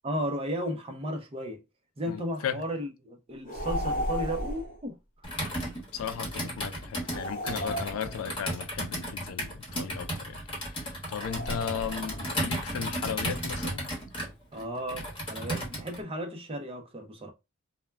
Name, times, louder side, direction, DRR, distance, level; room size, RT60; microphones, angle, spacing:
voice 1, 0.0-1.6 2.0-5.0 14.5-17.3, equal, 25° right, 0.5 m, -34 dB
voice 2, 2.1-2.6 5.9-13.9, left 8 dB, 80° left, 0.3 m, -36 dB
sound 1, 3.5-4.8 7.1-8.5 11.2-12.3, equal, 40° left, 0.6 m, -34 dB
Computer keyboard, 5.2-16.0, equal, 25° left, 1.0 m, -34 dB
2.2 x 2.1 x 3.2 m
head